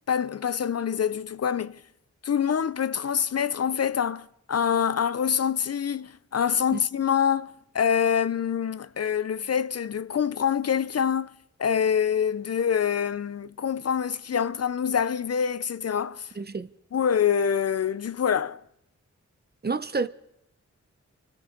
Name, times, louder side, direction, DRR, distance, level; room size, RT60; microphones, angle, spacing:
voice 1, 0.1-1.8 2.2-11.3 11.6-16.3 16.9-18.6, left 8 dB, 55° left, 0.5 m, -25 dB
voice 2, 16.4-16.7 19.6-20.1, right 4 dB, 35° right, 0.8 m, -29 dB
24.5 x 13.5 x 3.9 m
cardioid pair, 55°, 30 cm